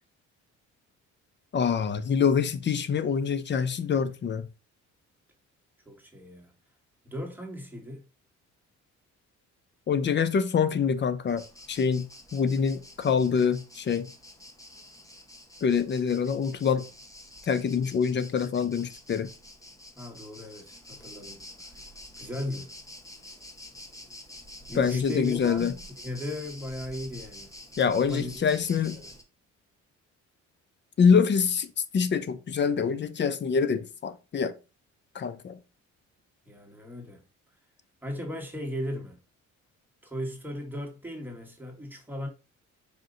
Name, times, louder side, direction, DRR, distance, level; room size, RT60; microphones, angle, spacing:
voice 1, 1.5-4.5 9.9-12.1 12.3-14.1 15.6-16.8 17.5-19.3 24.8-25.7 27.8-29.0 31.0-31.7 31.9-34.5 35.1-35.6, left 6 dB, 35° left, 0.5 m, -25 dB
voice 2, 5.8-6.5 7.0-8.0 19.9-21.4 22.2-22.7 24.7-27.5 28.0-28.3 28.7-29.1 36.4-37.2 38.0-39.2 40.0-42.3, left 1 dB, 5° right, 1.4 m, -37 dB
sound 1, 11.3-29.2, left 1 dB, 10° left, 0.9 m, -48 dB
5.1 x 2.6 x 3.8 m
cardioid pair, 90°, 30 cm